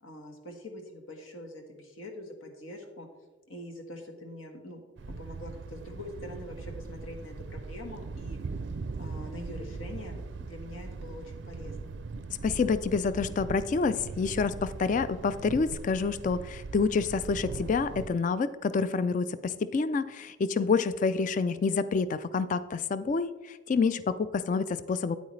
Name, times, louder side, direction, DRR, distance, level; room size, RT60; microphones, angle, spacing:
voice 1, 0.0-3.1 3.5-4.8 5.1-8.4 9.0-11.9, left 1 dB, 80° left, 4 dB, 1.4 m, -44 dB
Thunder, 5.0-18.1, right 3 dB, 60° right, 0.4 m, -40 dB
voice 2, 12.4-25.2, left 4 dB, 40° left, 14 dB, 0.3 m, -28 dB
9.2 x 8.6 x 3.2 m, 1.2 s
head